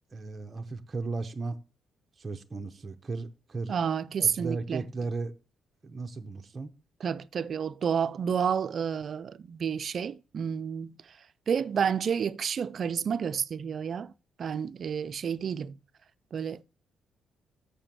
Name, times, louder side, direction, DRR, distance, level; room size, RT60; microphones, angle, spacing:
voice 1, 0.1-1.6 2.2-3.7 4.2-5.3 5.8-6.7, right 3 dB, 20° right, 0.8 m, -35 dB
voice 2, 3.7-4.8 7.0-10.9 11.5-14.1 14.4-15.8 16.3-16.6, right 7 dB, 40° right, 0.4 m, -30 dB
6.8 x 6.8 x 7.4 m
cardioid pair, 170°, 0 cm